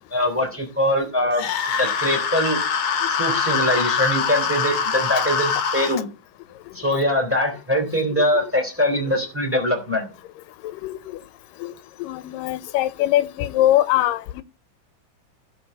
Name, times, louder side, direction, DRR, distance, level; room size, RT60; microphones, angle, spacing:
voice 1, 0.1-1.5 1.8-2.6 3.1-6.1 6.7-10.1, equal, 5° right, 2.7 m, -22 dB
sound 1, 1.3-6.0, left 6 dB, 65° left, 2.3 m, -23 dB
voice 2, 10.6-11.0 11.6-11.7 12.0-14.4, left 13 dB, 90° left, 2.3 m, -22 dB
15.5 x 5.2 x 5.4 m
omnidirectional pair, 3.8 m